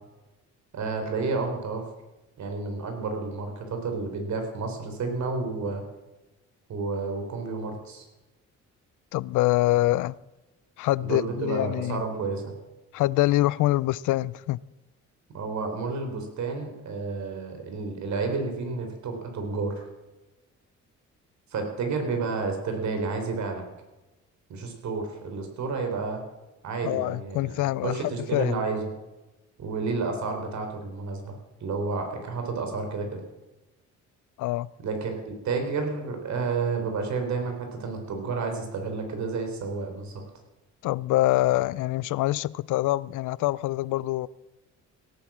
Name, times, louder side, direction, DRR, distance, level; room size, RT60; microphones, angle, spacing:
voice 1, 0.7-1.8 2.4-5.8 6.7-8.1 11.0-12.5 15.3-19.9 21.5-23.6 24.5-26.2 26.6-27.5 27.8-28.9 29.6-33.2 34.8-40.2, right 4 dB, 65° right, 4.1 m, -30 dB
voice 2, 9.1-10.2 10.8-12.0 12.9-14.6 26.8-28.0 28.3-28.6 34.4-34.7 40.8-44.3, left 16 dB, 85° left, 0.5 m, -25 dB
17.0 x 9.4 x 7.4 m
cardioid pair, 90°, 30 cm